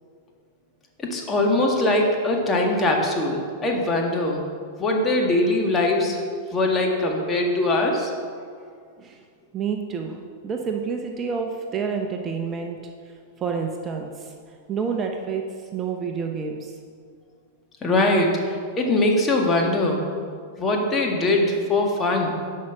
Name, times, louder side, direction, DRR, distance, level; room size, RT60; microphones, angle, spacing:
voice 1, 1.1-4.4 4.8-6.2 6.5-8.1 17.8-20.0 20.6-22.4, left 2 dB, 20° left, 0 dB, 1.8 m, -22 dB
voice 2, 9.5-12.8 13.4-14.1 14.7-15.4 15.7-16.7, right 6 dB, 25° right, 3 dB, 0.8 m, -28 dB
11.0 x 5.6 x 6.0 m, 2.1 s
figure-of-eight pair, 95°, 0 cm